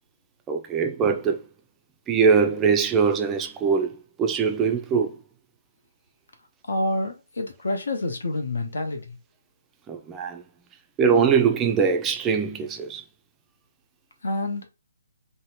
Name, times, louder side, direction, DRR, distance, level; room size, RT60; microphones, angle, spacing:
voice 1, 0.5-1.4 2.1-3.9 4.2-5.2 9.9-10.4 11.0-13.0, right 6 dB, 10° right, 0.3 m, -22 dB
voice 2, 6.7-9.2 14.2-14.7, left 2 dB, 80° left, 0.8 m, -28 dB
2.7 x 2.1 x 3.0 m
hypercardioid pair, 165°, 0 cm